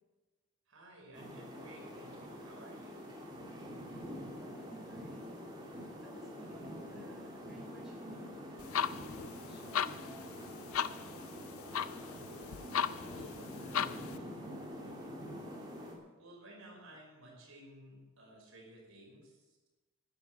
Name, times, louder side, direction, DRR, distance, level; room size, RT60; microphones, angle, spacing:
voice 1, 0.7-3.0 11.6-12.5 12.9-15.2 16.2-19.6, right 1 dB, 65° right, -1 dB, 5.3 m, -56 dB
sound 1, 1.1-16.0, equal, 20° right, 3.0 m, -46 dB
voice 2, 4.4-5.4 6.0-8.7 9.5-10.3, equal, ahead, -4 dB, 3.6 m, -56 dB
sound 2, 8.6-14.2, left 8 dB, 75° left, 0.5 m, -38 dB
12.0 x 10.5 x 7.7 m, 1.2 s
head